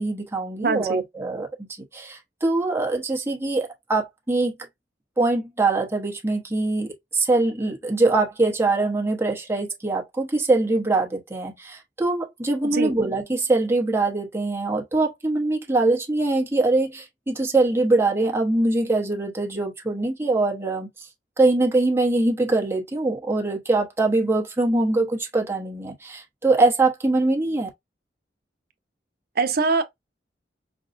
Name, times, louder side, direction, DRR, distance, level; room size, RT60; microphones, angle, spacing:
voice 1, 0.0-1.5 1.9-4.5 5.2-20.9 21.4-27.7, right 2 dB, 15° right, 1.0 m, -23 dB
voice 2, 0.6-1.0 12.7-12.9 29.4-29.8, right 4 dB, 60° right, 0.6 m, -22 dB
5.3 x 2.2 x 2.5 m
head